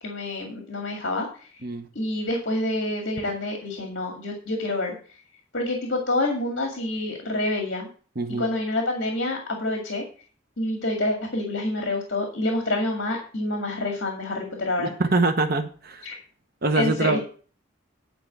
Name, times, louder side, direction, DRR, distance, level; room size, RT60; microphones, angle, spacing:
voice 1, 0.0-1.3 2.0-4.9 5.5-7.9 8.4-10.0 10.6-14.9 16.0-16.2 16.8-17.2, left 2 dB, 60° left, 1 dB, 2.1 m, -27 dB
voice 2, 8.2-8.5 14.8-16.1 16.6-17.2, right 3 dB, 50° right, 6 dB, 1.0 m, -24 dB
10.5 x 4.7 x 7.8 m, 0.40 s
head